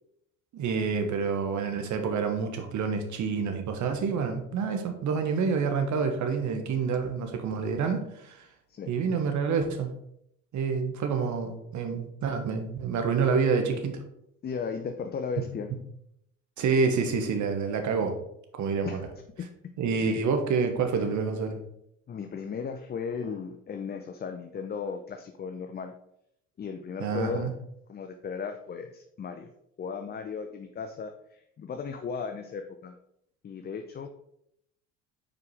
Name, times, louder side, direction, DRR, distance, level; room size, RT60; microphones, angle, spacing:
voice 1, 0.5-8.4 8.9-9.9 10.5-14.0 16.6-18.1 18.6-19.1 19.8-21.6 27.0-27.5, right 5 dB, 50° right, 6 dB, 1.4 m, -28 dB
voice 2, 14.4-15.7 18.8-19.0 19.4-19.5 20.9-21.2 22.1-25.9 26.6-27.5 27.9-29.5 29.8-33.0 33.4-34.1, left 6 dB, 25° left, 6 dB, 0.6 m, -36 dB
5.0 x 4.8 x 4.7 m, 0.75 s
hypercardioid pair, 75°, 38 cm